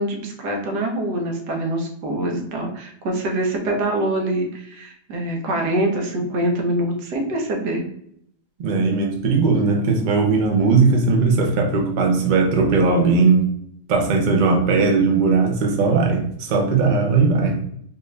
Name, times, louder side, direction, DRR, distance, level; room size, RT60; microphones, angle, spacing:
voice 1, 0.0-7.8, right 1 dB, 90° right, 2 dB, 1.5 m, -24 dB
voice 2, 8.6-13.5 13.9-17.6, right 4 dB, 50° right, 2 dB, 0.5 m, -18 dB
4.3 x 2.5 x 3.2 m, 0.69 s
omnidirectional pair, 1.7 m